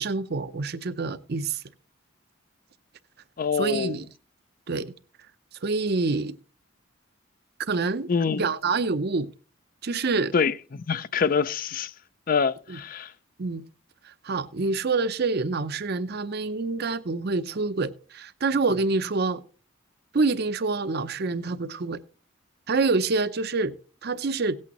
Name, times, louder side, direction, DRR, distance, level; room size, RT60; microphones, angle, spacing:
voice 1, 0.0-1.6 3.5-4.1 4.7-4.9 5.6-6.3 7.7-8.1 8.4-9.3 9.8-10.3 12.7-12.8 13.4-13.6 14.0-19.4 20.1-22.0 22.7-23.7 24.0-24.6, right 3 dB, 50° right, 0.6 m, -26 dB
voice 2, 3.4-4.0 8.1-8.4 10.3-11.9 12.3-13.1, left 5 dB, 45° left, 0.4 m, -25 dB
17.5 x 8.5 x 3.0 m
head